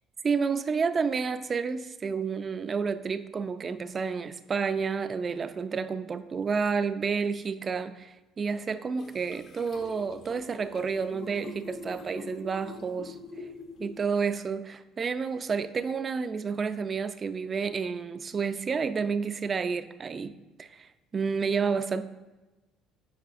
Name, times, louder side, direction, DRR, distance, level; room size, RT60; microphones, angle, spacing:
voice 1, 0.2-13.2 13.8-20.3 20.6-22.0, right 5 dB, 30° right, 12 dB, 0.3 m, -30 dB
sound 1, 9.0-14.3, left 3 dB, 55° left, 0.7 m, -44 dB
9.0 x 4.9 x 2.5 m, 1.1 s
cardioid pair, 125°, 0 cm